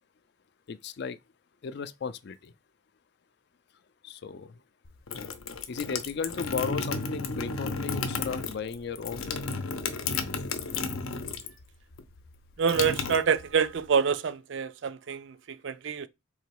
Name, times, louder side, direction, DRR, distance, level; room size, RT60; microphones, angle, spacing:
voice 1, 0.7-1.2 1.6-2.5 4.0-4.6 5.7-9.3, left 5 dB, 50° left, 0.4 m, -35 dB
sound 1, 4.8-11.6 11.9-13.8, left 4 dB, 80° left, 0.7 m, -33 dB
voice 2, 12.6-16.1, right 6 dB, 60° right, 0.4 m, -27 dB
3.9 x 2.9 x 4.6 m
head